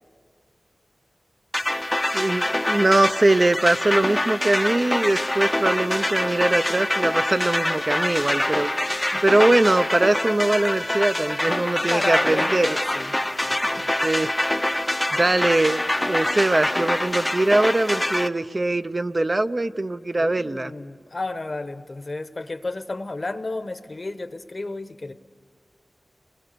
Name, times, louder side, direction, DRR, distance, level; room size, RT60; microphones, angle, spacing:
sound 1, 1.5-18.3, left 1 dB, 15° left, 0.6 m, -25 dB
voice 1, 2.1-8.7 9.2-12.7 14.0-14.3 15.1-15.8 16.1-20.7, right 2 dB, 35° right, 10 dB, 0.5 m, -21 dB
voice 2, 11.9-13.1 13.4-14.0 20.2-25.1, left 2 dB, 45° left, 10 dB, 1.0 m, -32 dB
29.0 x 21.0 x 6.8 m, 2.1 s
wide cardioid pair, 85°, 0 cm